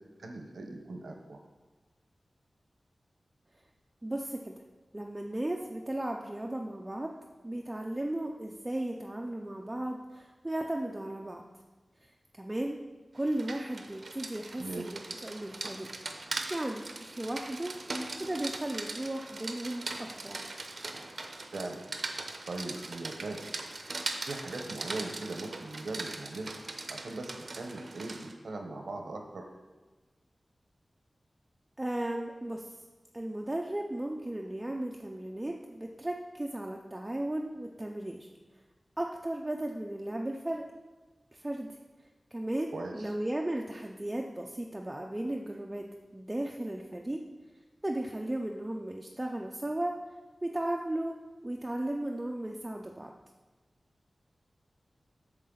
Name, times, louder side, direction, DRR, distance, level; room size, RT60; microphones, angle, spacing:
voice 1, 0.2-1.4 14.6-15.0 21.5-21.8 22.5-23.5 24.3-26.6 26.9-29.5 42.7-43.1, right 2 dB, 85° right, 3 dB, 0.9 m, -40 dB
voice 2, 4.0-4.5 4.9-7.1 7.4-11.4 12.4-12.8 13.1-15.9 16.5-17.7 18.2-20.4 31.8-32.7 33.1-38.3 39.0-40.6 41.3-41.7 42.3-45.9 46.1-47.2 47.8-50.0 50.4-51.2 51.4-53.1, right 1 dB, 20° right, 1 dB, 0.5 m, -35 dB
Rain, 13.2-28.3, right 3 dB, 65° right, 0.7 m, -40 dB
8.3 x 6.6 x 3.9 m, 1.2 s
wide cardioid pair, 95°, 0 cm